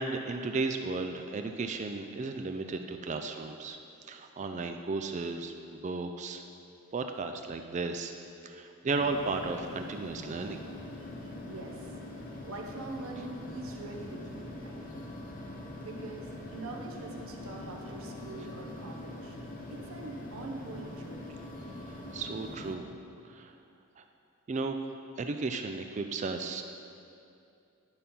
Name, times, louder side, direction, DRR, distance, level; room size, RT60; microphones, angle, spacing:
voice 1, 0.0-3.8 4.0-6.4 6.9-8.1 8.4-10.6 21.9-22.9 23.3-23.5 24.0-24.1 24.5-24.8 25.2-26.6, right 3 dB, 30° right, 6 dB, 0.3 m, -34 dB
sound 1, 9.0-22.7, left 1 dB, 35° left, 0.8 m, -43 dB
voice 2, 11.4-11.9 12.5-15.1 15.8-19.4 19.7-21.4, right 2 dB, 65° right, 1 dB, 0.8 m, -44 dB
10.5 x 4.2 x 5.4 m, 2.6 s
head